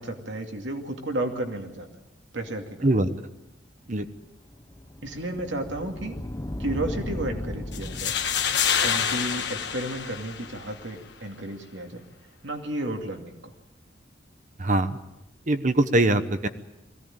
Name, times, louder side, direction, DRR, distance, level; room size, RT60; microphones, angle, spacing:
voice 1, 0.0-1.9 2.3-2.9 5.0-6.2 6.6-8.2 8.8-12.0 12.4-13.5, right 1 dB, 75° right, 3 dB, 2.5 m, -32 dB
sound 1, 4.0-10.9, left 1 dB, 20° left, 0.9 m, -38 dB
sound 2, 7.7-10.7, left 8 dB, 60° left, 1.5 m, -27 dB
voice 2, 14.6-15.0 15.5-16.5, right 1 dB, 40° right, 10 dB, 1.0 m, -22 dB
22.0 x 16.5 x 8.9 m, 0.95 s
head